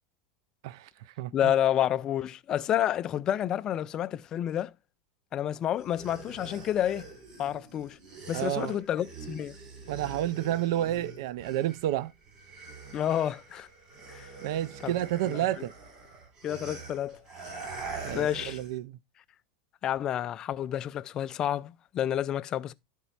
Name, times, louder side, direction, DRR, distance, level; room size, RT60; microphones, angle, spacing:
voice 1, 0.6-1.5 8.3-8.7 9.9-12.1 14.4-15.7 18.0-19.0, right 13 dB, 70° right, 0.4 m, -30 dB
voice 2, 1.3-4.7 5.3-7.1 7.4-8.0 8.3-9.6 12.9-13.7 14.1-14.3 14.8-14.9 15.3-15.4 16.4-17.2 18.1-18.6 19.8-22.7, left 11 dB, 30° left, 0.4 m, -29 dB
sound 1, 5.8-12.0 12.3-18.8, right 3 dB, 35° right, 3.5 m, -44 dB
11.0 x 4.5 x 4.1 m
supercardioid pair, 150°, 2 cm